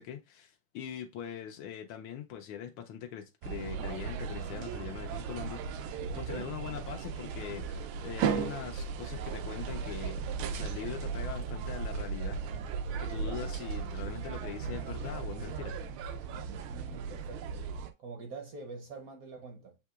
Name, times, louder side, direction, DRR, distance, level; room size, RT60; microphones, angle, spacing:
voice 1, 0.0-5.8 6.1-12.4 13.0-15.8, left 9 dB, 85° left, 1.5 m, -42 dB
sound 1, 3.4-17.9, right 6 dB, 90° right, 1.4 m, -36 dB
voice 2, 16.4-17.6 18.0-19.8, right 4 dB, 65° right, 0.9 m, -45 dB
7.9 x 2.8 x 2.3 m
omnidirectional pair, 2.2 m